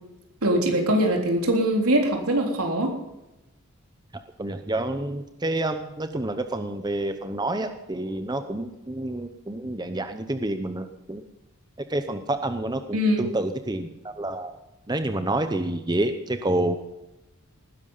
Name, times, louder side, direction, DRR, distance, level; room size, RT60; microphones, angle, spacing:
voice 1, 0.4-3.0 12.9-13.3, right 1 dB, 80° right, 2 dB, 3.7 m, -22 dB
voice 2, 4.4-11.2 11.9-14.6 14.9-16.8, right 1 dB, 20° right, 8 dB, 0.8 m, -28 dB
19.0 x 10.5 x 5.6 m, 0.96 s
head